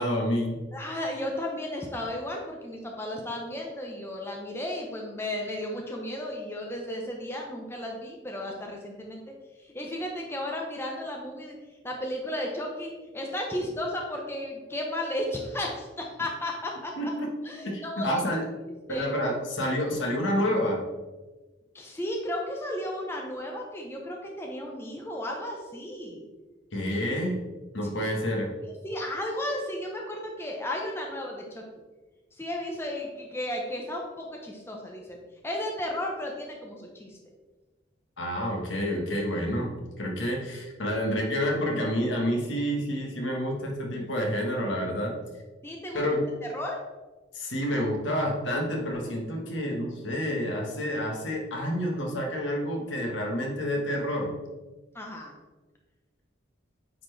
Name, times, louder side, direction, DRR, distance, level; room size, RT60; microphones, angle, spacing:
voice 1, 0.0-0.6 17.0-17.3 17.6-18.4 18.9-20.8 26.7-27.4 27.7-28.5 38.2-39.7 40.0-45.1 45.9-46.2 47.3-54.3, equal, 75° left, 0 dB, 1.4 m, -28 dB
voice 2, 0.7-9.2 9.6-11.6 11.8-17.1 17.4-18.1 18.9-19.0 21.7-26.3 28.6-31.6 32.4-35.2 35.4-37.2 45.6-46.0 46.5-46.8 54.9-55.3, left 1 dB, 10° left, 0 dB, 0.7 m, -34 dB
8.9 x 4.3 x 3.3 m, 1.2 s
head